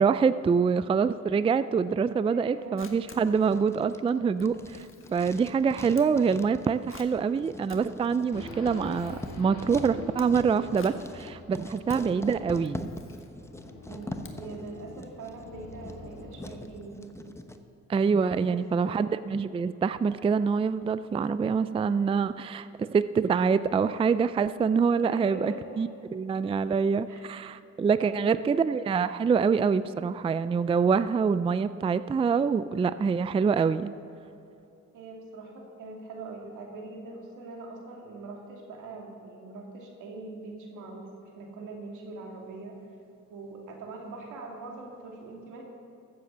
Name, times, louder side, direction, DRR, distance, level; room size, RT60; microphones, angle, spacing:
voice 1, 0.0-4.9 5.1-12.9 17.9-33.9, right 5 dB, 20° right, 14 dB, 0.3 m, -25 dB
voice 2, 2.3-2.8 11.9-12.3 13.9-17.2 18.5-18.6 18.8-19.2 25.0-25.8 27.1-27.3 28.0-28.4 34.9-42.7 43.3-45.6, right 3 dB, 85° right, 0 dB, 2.6 m, -42 dB
Camera, 2.6-14.8, left 5 dB, 45° left, 1.5 m, -52 dB
Writing, 3.2-17.6, left 1 dB, 10° left, 0.9 m, -43 dB
Race car auto racing / Idling / Accelerating revving vroom, 8.3-16.9, left 2 dB, 65° left, 3.7 m, -45 dB
14.0 x 7.9 x 6.9 m, 2.7 s
cardioid pair, 90°, 30 cm